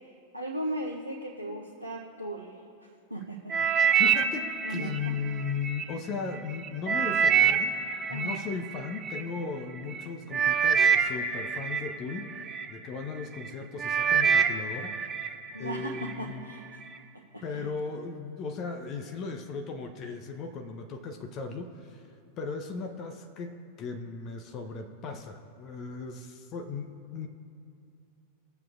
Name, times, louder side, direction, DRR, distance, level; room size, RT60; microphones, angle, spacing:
voice 1, 0.3-2.6 3.1-3.5 4.6-4.9 8.1-8.4 15.5-16.8 17.3-17.7, right 1 dB, 90° right, -3 dB, 0.8 m, -37 dB
sound 1, 3.5-5.8 6.4-9.2 9.9-10.0 10.3-12.7 13.2-13.5 13.8-15.3 15.7-16.1 16.7-16.8, right 7 dB, 20° right, 0.6 m, -26 dB
voice 2, 4.0-7.8 8.1-15.3 15.6-16.5 17.4-22.1 22.4-27.3, left 5 dB, 35° left, 5 dB, 0.7 m, -37 dB
19.5 x 7.5 x 2.5 m, 2.5 s
figure-of-eight pair, 90°, 0 cm